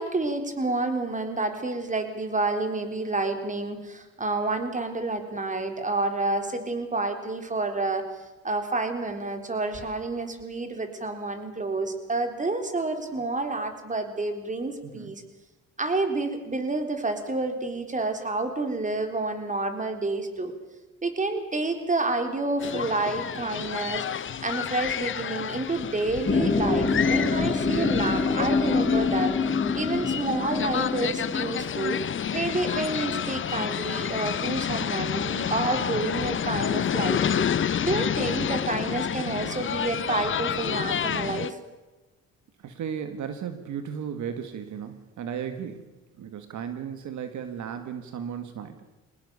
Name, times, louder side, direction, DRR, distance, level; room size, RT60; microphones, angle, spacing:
voice 1, 0.0-8.0 8.4-15.2 15.8-20.5 21.0-29.4 29.7-32.0 32.3-37.5 37.8-41.6, right 2 dB, 25° right, 6 dB, 3.8 m, -29 dB
voice 2, 14.8-15.1 29.9-30.2 39.3-39.6 42.6-45.9 46.2-48.8, right 8 dB, 75° right, 8 dB, 1.9 m, -35 dB
sound 1, 22.6-41.5, left 8 dB, 40° left, 0.8 m, -29 dB
sound 2, 26.3-31.5, left 4 dB, 25° left, 5.9 m, -26 dB
23.5 x 19.5 x 6.9 m, 1.1 s
cardioid pair, 90°, 30 cm